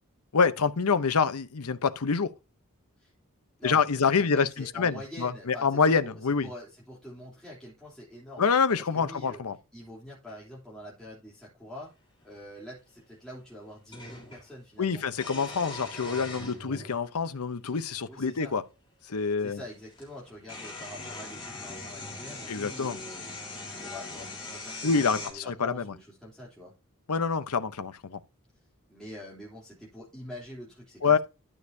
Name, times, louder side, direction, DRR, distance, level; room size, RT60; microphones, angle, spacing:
voice 1, 0.3-2.3 3.6-6.5 8.4-9.6 14.8-18.6 19.1-19.6 22.5-23.0 24.8-26.0 27.1-28.2 31.0-31.2, left 5 dB, 90° left, 0.8 m, -26 dB
voice 2, 3.6-8.5 8.8-9.4 9.7-11.9 12.2-15.0 18.1-18.6 19.4-23.2 23.8-26.7 28.9-31.2, left 1 dB, 5° left, 3.2 m, -45 dB
sound 1, 12.2-12.3 13.9-14.5 15.1-17.0 17.9-18.0 19.5-19.6 19.9-25.3, left 2 dB, 25° left, 3.6 m, -40 dB
12.0 x 6.5 x 2.7 m
head